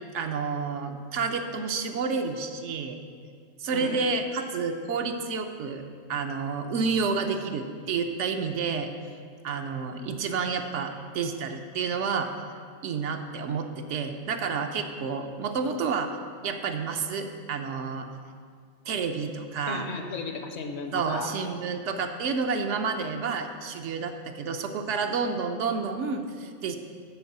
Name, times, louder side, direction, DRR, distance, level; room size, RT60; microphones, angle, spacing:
voice 1, 0.1-3.0 3.6-5.8 6.1-8.9 9.4-12.3 12.8-16.2 16.4-18.1 18.9-19.9 20.9-26.8, right 5 dB, 75° right, 5 dB, 0.9 m, -30 dB
voice 2, 3.7-4.1 19.7-21.3, left 4 dB, 65° left, 5 dB, 1.0 m, -35 dB
9.3 x 4.5 x 6.6 m, 2.1 s
omnidirectional pair, 1.3 m